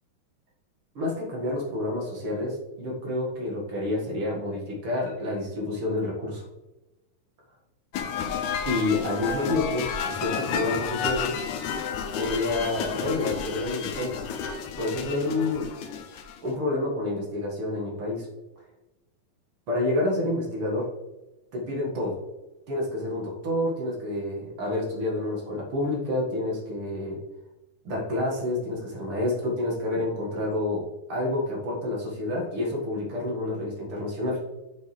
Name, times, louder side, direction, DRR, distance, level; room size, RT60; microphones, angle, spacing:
voice 1, 1.0-6.5 8.6-11.4 12.1-14.2 14.8-15.7 16.4-18.3 19.7-20.9 21.5-22.2 22.7-27.2 27.8-34.4, left 2 dB, 45° right, -3 dB, 2.3 m, -29 dB
sound 1, 7.9-16.5, left 7 dB, 75° left, 1.9 m, -31 dB
9.2 x 5.3 x 3.3 m, 1.0 s
omnidirectional pair, 3.9 m